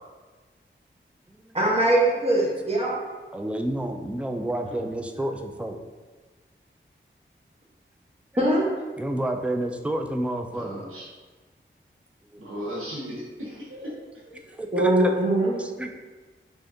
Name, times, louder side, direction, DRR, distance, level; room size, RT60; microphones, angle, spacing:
voice 1, 1.5-2.9 8.4-8.7 14.7-15.5, right 1 dB, 30° right, -4 dB, 1.0 m, -21 dB
voice 2, 3.3-5.8 9.0-10.8 12.3-12.5 14.5-15.1 15.6-15.9, right 1 dB, 5° right, 4 dB, 0.3 m, -30 dB
voice 3, 10.5-11.1 12.4-14.0, equal, 85° right, -6 dB, 0.9 m, -36 dB
3.6 x 3.4 x 2.7 m, 1.3 s
wide cardioid pair, 70°, 21 cm